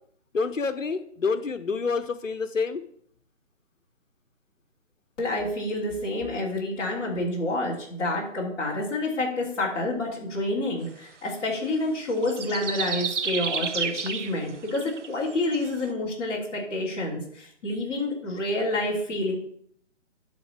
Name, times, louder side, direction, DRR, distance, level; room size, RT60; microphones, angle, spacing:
voice 1, 0.3-2.8, left 4 dB, 90° left, 9 dB, 1.1 m, -28 dB
voice 2, 5.2-19.4, left 2 dB, 15° left, -7 dB, 3.0 m, -28 dB
sound 1, 12.1-15.8, right 6 dB, 70° right, 0.9 m, -30 dB
11.5 x 4.2 x 7.5 m, 0.64 s
hypercardioid pair, 160°, 37 cm